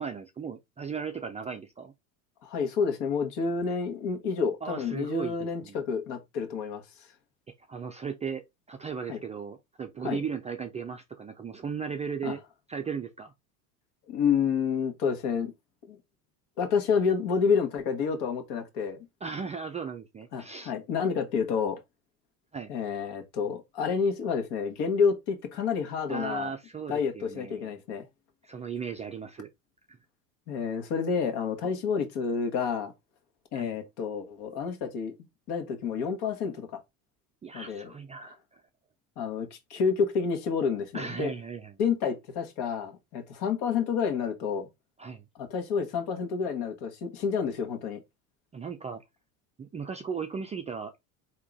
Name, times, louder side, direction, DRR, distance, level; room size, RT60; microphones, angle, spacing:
voice 1, 0.0-1.9 4.6-5.4 5.6-5.8 7.7-12.4 12.7-13.3 19.2-20.7 22.5-22.7 26.1-27.7 28.4-29.5 29.9-30.0 33.5-33.8 37.4-38.6 40.9-41.8 45.0-45.2 48.5-49.0 49.6-50.9, right 6 dB, 15° right, 0.3 m, -36 dB
voice 2, 2.4-6.8 9.1-9.2 10.0-10.2 12.2-12.3 14.1-15.5 15.9-16.0 16.6-19.1 20.3-21.8 22.7-26.5 26.9-28.0 30.5-32.9 33.5-35.1 35.5-36.8 37.5-37.9 39.2-41.3 41.8-44.7 45.4-48.0, left 6 dB, 60° left, 1.4 m, -29 dB
3.7 x 2.9 x 3.5 m
hypercardioid pair, 85°, 46 cm